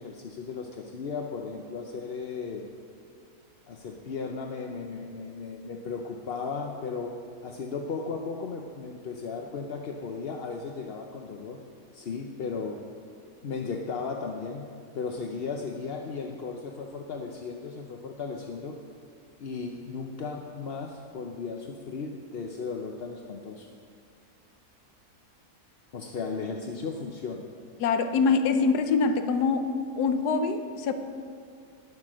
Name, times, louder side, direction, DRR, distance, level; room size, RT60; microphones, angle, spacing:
voice 1, 0.0-2.7 3.7-7.2 7.4-11.6 11.9-12.8 13.4-14.7 14.9-18.8 19.4-23.7 25.9-27.5, left 4 dB, 50° left, 2 dB, 0.8 m, -35 dB
voice 2, 27.8-30.9, left 4 dB, 85° left, 7 dB, 1.3 m, -24 dB
12.5 x 9.6 x 6.3 m, 2.2 s
omnidirectional pair, 1.7 m